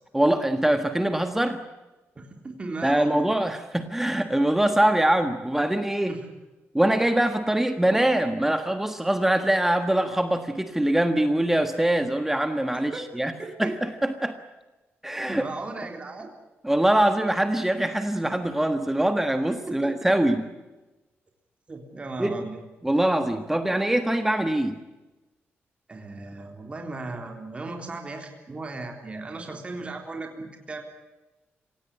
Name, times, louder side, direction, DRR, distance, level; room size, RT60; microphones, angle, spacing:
voice 1, 0.1-1.6 2.8-6.2 6.7-13.3 13.6-14.4 15.0-15.4 16.6-20.4 22.2-22.3 22.8-24.8, right 1 dB, 5° right, 8 dB, 1.5 m, -23 dB
voice 2, 2.2-3.2 6.1-6.3 12.9-13.0 13.4-13.8 15.3-16.3 19.7-19.9 21.7-22.6 25.9-30.8, right 3 dB, 25° right, 3 dB, 3.8 m, -36 dB
25.5 x 17.5 x 10.0 m, 1.1 s
wide cardioid pair, 135°, 5 cm